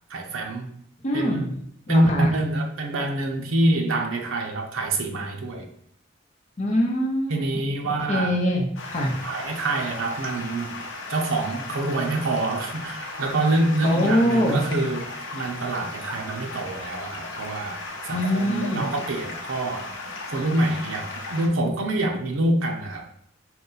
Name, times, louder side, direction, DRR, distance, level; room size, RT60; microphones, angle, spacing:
voice 1, 0.1-0.7 1.1-1.5 1.9-5.7 7.3-8.4 9.0-10.8 11.1-19.9 20.3-23.1, right 1 dB, 85° right, 2 dB, 0.6 m, -26 dB
voice 2, 1.0-1.5 1.9-2.3 6.6-7.7 8.1-9.1 13.8-14.6 18.1-18.9, equal, 35° left, 0 dB, 0.7 m, -24 dB
Stream, 8.8-21.5, left 3 dB, 80° left, 0.7 m, -36 dB
3.9 x 2.2 x 3.9 m, 0.67 s
head